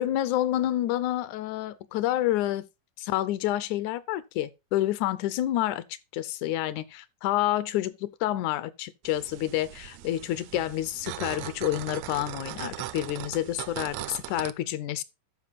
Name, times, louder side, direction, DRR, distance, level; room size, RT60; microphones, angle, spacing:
voice 1, 0.0-2.7 3.0-5.8 6.1-15.0, left 13 dB, 80° left, 1.9 m, -28 dB
sound 1, 9.0-14.5, right 14 dB, 80° right, 1.6 m, -39 dB
13.0 x 5.1 x 4.0 m
omnidirectional pair, 3.7 m